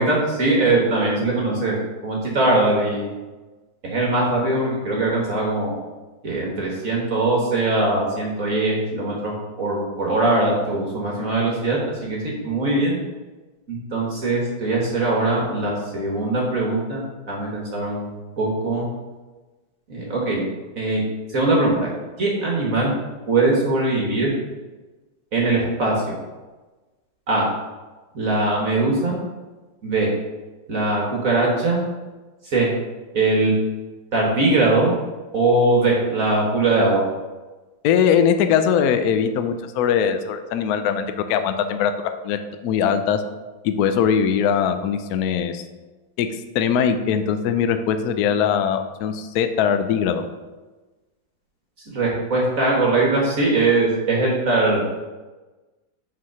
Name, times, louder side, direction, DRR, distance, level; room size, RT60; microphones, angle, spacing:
voice 1, 0.0-1.8 2.0-3.1 3.8-5.7 6.2-9.3 9.6-13.0 13.7-18.1 18.4-18.9 19.9-20.4 20.8-21.0 21.3-21.9 22.2-22.9 23.3-24.3 25.3-26.2 27.3-27.4 28.1-29.2 29.8-30.1 30.7-31.8 32.4-32.7 33.1-33.5 34.1-34.9 35.3-37.0 51.9-54.8, right 2 dB, 45° right, -2 dB, 1.5 m, -21 dB
voice 2, 37.8-43.2 43.6-45.6 46.2-46.3 46.5-50.2, left 7 dB, 80° left, 8 dB, 0.8 m, -21 dB
6.1 x 4.7 x 5.5 m, 1.2 s
omnidirectional pair, 2.2 m